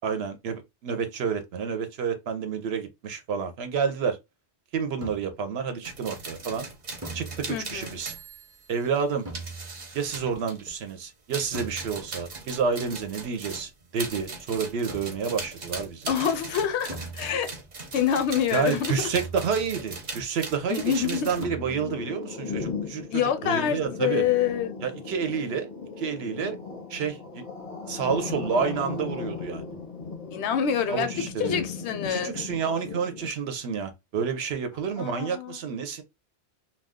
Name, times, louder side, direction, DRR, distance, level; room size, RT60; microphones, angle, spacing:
voice 1, 0.0-4.2 4.7-6.7 7.1-8.1 8.7-9.3 9.9-16.1 18.5-24.2 24.8-25.7 26.0-26.6 26.9-27.4 27.9-29.6 30.9-31.6 32.1-36.0, right 6 dB, 70° right, 0.9 m, -29 dB
sound 1, 5.0-5.6 7.0-7.9 9.2-10.0 11.5-12.2 14.9-15.4 16.9-17.8 19.1-19.9 21.4-22.1, right 2 dB, 15° right, 0.6 m, -41 dB
sound 2, 5.8-10.9 11.3-21.4, right 3 dB, 45° right, 0.8 m, -39 dB
voice 2, 7.5-8.0 16.1-17.5 17.9-18.9 20.7-21.3 23.1-24.7 30.3-31.1 31.4-32.3 35.0-35.6, left 8 dB, 80° left, 0.8 m, -26 dB
sound 3, 20.8-33.3, left 4 dB, 40° left, 0.6 m, -37 dB
2.3 x 2.3 x 3.5 m
omnidirectional pair, 1.1 m